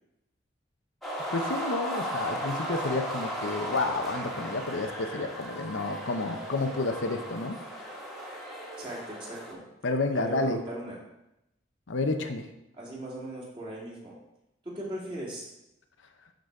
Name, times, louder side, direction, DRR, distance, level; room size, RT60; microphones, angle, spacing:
sound 1, 1.0-9.5, equal, ahead, 1.6 m, -36 dB
voice 1, 1.3-7.6 9.8-10.6 11.9-12.5, left 2 dB, 80° left, 6 dB, 0.8 m, -30 dB
voice 2, 8.8-9.6 10.1-11.0 12.7-14.2 14.6-15.5, right 1 dB, 30° right, -5 dB, 2.5 m, -38 dB
12.0 x 4.0 x 4.7 m, 0.87 s
head